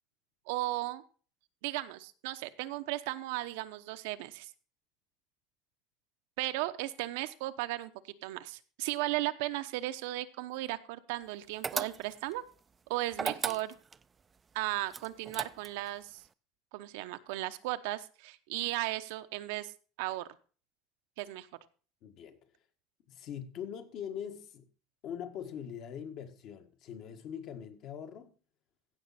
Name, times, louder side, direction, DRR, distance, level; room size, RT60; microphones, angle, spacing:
voice 1, 0.5-1.0 1.6-4.5 6.4-7.9 8.2-12.4 12.9-13.7 14.5-16.2 16.7-19.7 20.0-20.3 21.2-21.5, right 17 dB, 80° right, 0.8 m, -36 dB
sound 1, 11.6-12.3 13.1-14.0 14.9-15.9, right 5 dB, 20° right, 0.4 m, -36 dB
voice 2, 22.0-22.4 23.1-24.7 25.0-28.3, left 8 dB, 50° left, 1.6 m, -42 dB
16.0 x 6.3 x 4.2 m
cardioid pair, 145°, 0 cm